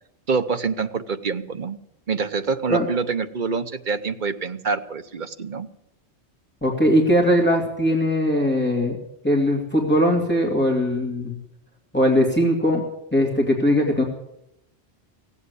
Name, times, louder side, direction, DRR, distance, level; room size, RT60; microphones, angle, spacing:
voice 1, 0.3-1.8 2.1-5.7, right 5 dB, 45° right, 10 dB, 1.0 m, -26 dB
voice 2, 6.6-9.0 9.2-11.4 11.9-12.8 13.1-14.0, equal, 10° left, -1 dB, 2.6 m, -20 dB
17.0 x 8.4 x 9.6 m, 0.82 s
omnidirectional pair, 1.2 m